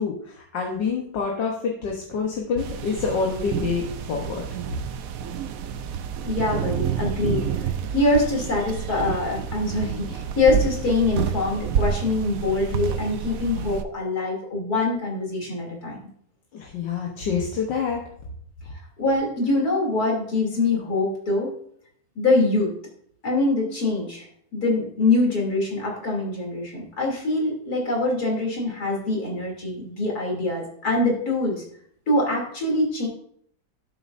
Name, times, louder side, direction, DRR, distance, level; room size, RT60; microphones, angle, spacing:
voice 1, 0.0-4.4 16.5-18.0, left 5 dB, 75° left, 0 dB, 1.7 m, -27 dB
sound 1, 2.6-13.8, right 8 dB, 65° right, 0.9 m, -29 dB
voice 2, 6.2-16.0 19.0-21.5 22.1-22.7 23.2-24.2 24.5-31.6 32.1-33.1, left 2 dB, 55° left, -2 dB, 3.4 m, -24 dB
12.5 x 6.8 x 2.6 m, 0.65 s
omnidirectional pair, 2.0 m